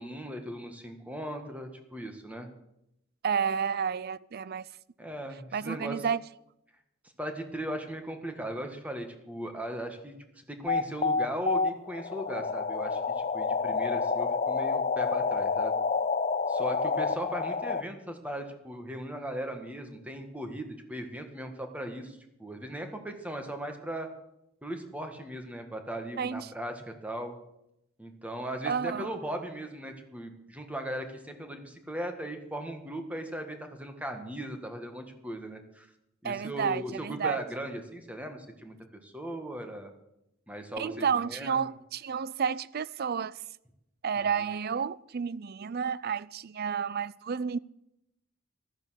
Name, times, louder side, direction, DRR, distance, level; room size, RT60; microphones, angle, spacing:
voice 1, 0.0-2.5 5.0-6.1 7.2-15.8 16.5-24.1 24.6-27.4 28.0-35.9 36.2-38.8 39.0-39.9 40.5-41.7 44.2-44.5, right 1 dB, 5° right, 1.7 m, -38 dB
voice 2, 3.2-4.7 5.5-6.2 26.2-26.5 28.6-29.1 36.2-37.4 40.8-43.3 44.0-47.6, right 6 dB, 50° right, 0.5 m, -31 dB
sound 1, 10.7-17.8, left 4 dB, 35° left, 0.6 m, -28 dB
15.0 x 13.0 x 6.5 m
head